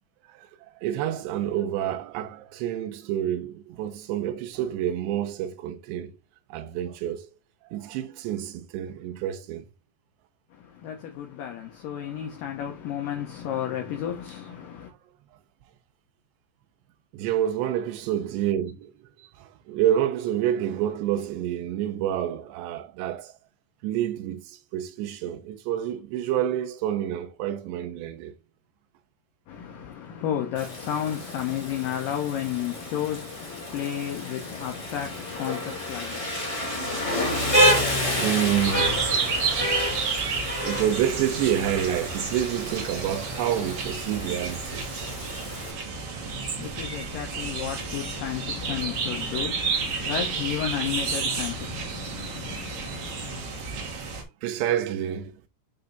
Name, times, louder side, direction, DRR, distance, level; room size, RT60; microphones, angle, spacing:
voice 1, 0.8-6.1 6.5-7.3 7.7-9.7 17.1-18.9 19.2-19.3 19.7-23.3 23.8-28.3 33.6-33.8 36.2-36.9 37.5-39.1 39.4-39.9 40.6-44.9 50.0-50.1 54.4-55.3, right 11 dB, 80° right, 3.0 m, -28 dB
voice 2, 10.5-14.9 29.5-37.0 46.1-53.4, left 10 dB, 70° left, 2.2 m, -33 dB
Rain, 30.5-45.7, equal, 30° left, 0.6 m, -29 dB
sound 1, 38.6-54.2, right 5 dB, 60° right, 1.5 m, -31 dB
8.7 x 3.4 x 3.9 m
omnidirectional pair, 4.9 m